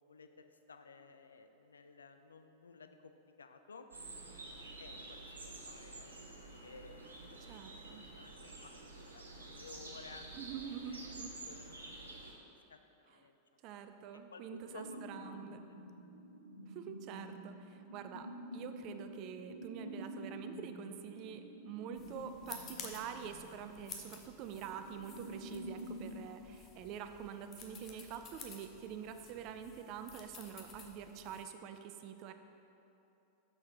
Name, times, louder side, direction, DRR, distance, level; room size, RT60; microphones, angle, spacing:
voice 1, 0.0-3.9 4.8-7.4 7.7-7.9 8.1-10.3 10.9-13.4 14.1-15.4 15.7-15.8 16.4-16.5, left 4 dB, 70° left, 7 dB, 0.4 m, -56 dB
sound 1, 3.9-12.3, right 2 dB, 75° right, 0.7 m, -50 dB
voice 2, 7.5-8.0 10.4-11.3 13.6-15.6 16.7-32.3, right 8 dB, 40° right, 8 dB, 0.4 m, -46 dB
sound 2, 14.7-26.1, equal, 90° left, 0.9 m, -49 dB
sound 3, 22.0-31.4, left 5 dB, 30° left, 0.7 m, -53 dB
6.3 x 6.0 x 3.8 m, 2.9 s
figure-of-eight pair, 90°, 0 cm